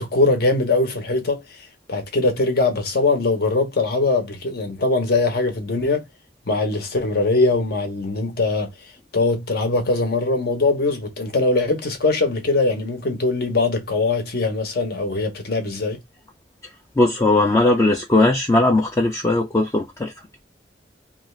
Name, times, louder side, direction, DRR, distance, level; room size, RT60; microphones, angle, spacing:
voice 1, 0.0-6.0 6.5-8.7 9.1-16.0, left 3 dB, 60° left, 0.7 m, -21 dB
voice 2, 16.6-20.1, left 2 dB, 15° left, 0.3 m, -19 dB
2.5 x 2.3 x 3.0 m
head